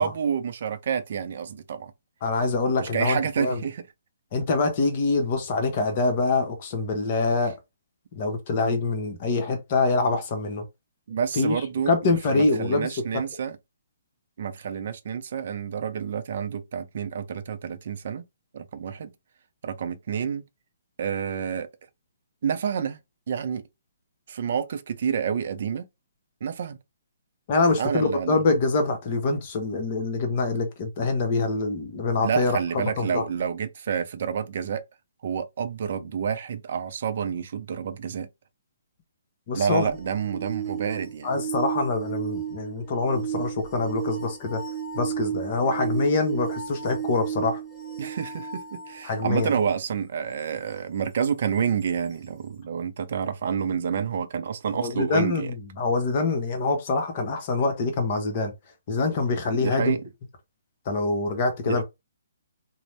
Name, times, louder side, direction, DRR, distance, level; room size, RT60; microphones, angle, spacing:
voice 1, 0.0-1.9 2.8-3.8 11.1-13.6 14.4-18.2 18.5-19.1 19.6-20.4 21.0-21.7 22.4-23.0 23.3-23.6 24.3-25.9 26.4-26.8 27.8-28.4 32.2-34.8 35.2-38.3 39.6-41.3 48.0-55.5 59.6-60.0 61.7-61.8, right 7 dB, 55° right, 0.5 m, -29 dB
voice 2, 2.2-3.6 4.3-7.5 8.2-10.7 11.3-13.0 27.5-33.2 39.5-39.9 41.2-44.6 44.9-47.6 49.0-49.5 54.7-58.5 58.9-59.9 60.9-61.8, left 3 dB, 40° left, 0.8 m, -25 dB
sound 1, 39.7-49.5 51.8-51.9, right 8 dB, 5° right, 0.6 m, -33 dB
2.6 x 2.0 x 3.2 m
hypercardioid pair, 145°, 0 cm